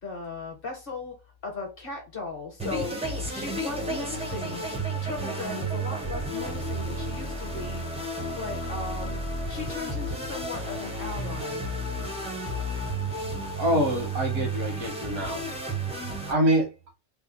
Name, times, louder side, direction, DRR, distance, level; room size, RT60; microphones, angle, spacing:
voice 1, 0.0-1.2 1.4-4.6 5.0-7.8 8.4-9.2 9.5-11.6, left 3 dB, 45° left, 1.0 m, -37 dB
sound 1, 2.6-16.3, right 2 dB, 5° right, 0.4 m, -32 dB
voice 2, 13.6-15.4 16.3-16.7, equal, 80° right, 1.7 m, -25 dB
3.4 x 2.1 x 3.8 m
omnidirectional pair, 1.5 m